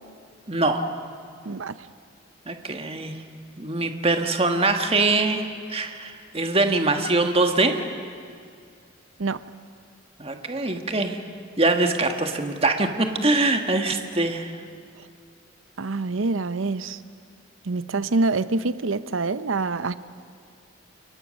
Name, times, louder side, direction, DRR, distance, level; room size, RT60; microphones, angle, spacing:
voice 1, 0.5-0.8 2.5-3.1 3.6-7.8 10.2-11.2 11.6-14.5, right 2 dB, 30° right, 5 dB, 1.6 m, -23 dB
voice 2, 1.4-1.8 9.2-9.4 15.8-17.0 17.6-20.0, right 3 dB, 75° right, 14 dB, 0.7 m, -26 dB
30.0 x 22.0 x 6.5 m, 2.2 s
head